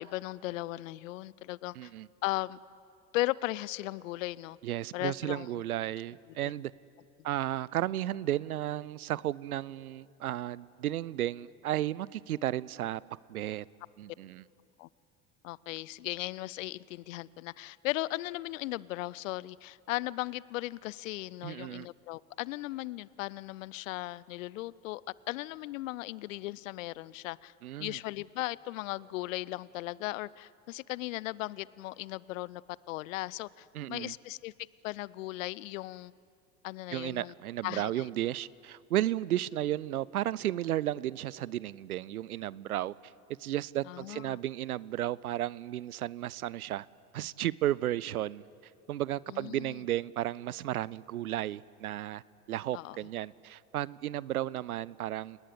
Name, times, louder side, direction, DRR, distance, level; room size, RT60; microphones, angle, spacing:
voice 1, 0.0-1.9 2.2-2.6 3.1-4.6 4.9-5.6 6.4-6.5 14.8-14.9 15.4-25.0 25.3-27.5 27.8-32.6 32.9-34.5 34.8-36.1 36.6-37.3 37.6-38.1 43.9-44.4 49.3-49.8 52.7-53.0, left 18 dB, 60° left, 23 dB, 0.6 m, -37 dB
voice 2, 1.8-2.1 4.6-6.7 7.2-13.0 13.3-13.7 14.0-14.4 21.4-21.9 27.6-28.0 33.7-34.1 36.9-43.1 43.4-46.9 47.1-48.4 48.9-52.2 52.5-55.4, right 13 dB, 75° right, 23 dB, 0.6 m, -33 dB
29.5 x 19.0 x 8.4 m, 2.5 s
figure-of-eight pair, 65°, 44 cm